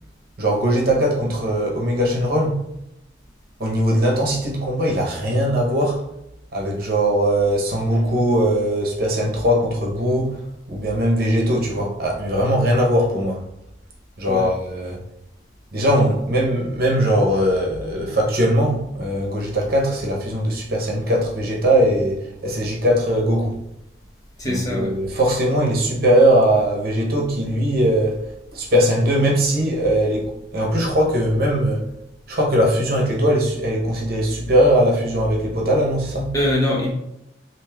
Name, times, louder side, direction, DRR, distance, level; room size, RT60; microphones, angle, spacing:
voice 1, 0.4-2.6 3.6-6.0 6.5-10.4 10.7-13.4 14.2-15.0 15.7-23.6 24.4-28.2 28.5-31.8 32.3-36.3, equal, 55° right, 0.8 m, -20 dB
voice 2, 24.4-24.9 36.3-36.9, left 1 dB, 20° left, 0.7 m, -22 dB
3.1 x 2.6 x 3.4 m
head